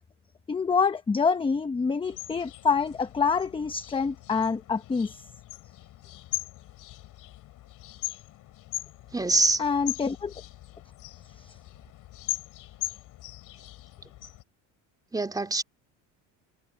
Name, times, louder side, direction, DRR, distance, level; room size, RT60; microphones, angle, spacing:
voice 1, 0.5-5.2 9.6-10.3 11.4-11.6, left 5 dB, 15° left, 0.9 m, -26 dB
sound 1, 2.0-14.4, left 17 dB, 55° left, 6.6 m, -40 dB
voice 2, 9.1-9.6 15.1-15.6, right 2 dB, 10° right, 2.9 m, -24 dB
supercardioid pair, 120°, 37 cm